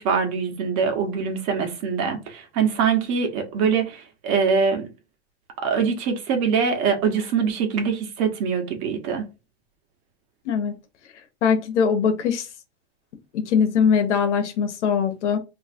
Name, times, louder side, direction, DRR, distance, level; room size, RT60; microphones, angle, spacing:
voice 1, 0.0-4.9 5.6-9.3, right 6 dB, 50° right, 1.2 m, -23 dB
voice 2, 11.4-12.5 13.3-15.4, left 6 dB, 85° left, 1.0 m, -21 dB
2.9 x 2.4 x 4.2 m
hypercardioid pair, 110°, 34 cm